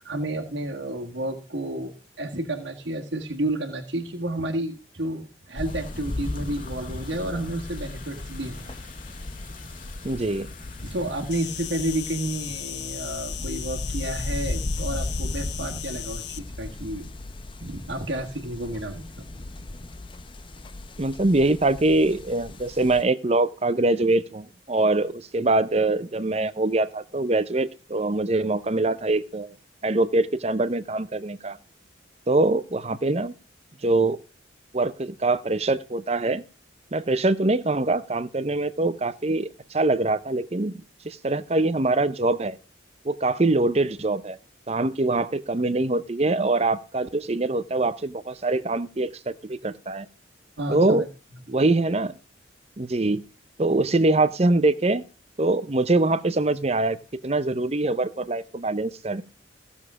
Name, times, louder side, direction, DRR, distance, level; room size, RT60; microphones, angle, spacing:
voice 1, 0.0-8.7 10.8-17.1 17.6-19.3 50.6-51.1 51.3-51.4, right 1 dB, 70° right, 1.7 m, -31 dB
sound 1, 5.6-12.6, left 2 dB, 45° left, 1.9 m, -44 dB
sound 2, 5.6-23.0, left 2 dB, 25° left, 0.6 m, -36 dB
voice 2, 10.0-10.5 21.0-29.5 29.8-31.6 32.3-33.3 33.8-34.2 34.7-36.4 36.9-40.7 41.0-42.6 43.0-44.4 44.7-50.1 50.7-51.1 51.5-52.1 52.8-53.2 53.6-55.0 55.4-57.0 57.2-59.2, right 2 dB, 35° right, 0.7 m, -23 dB
Insect, 11.3-16.4, left 13 dB, 60° left, 0.7 m, -37 dB
16.0 x 7.2 x 4.8 m
head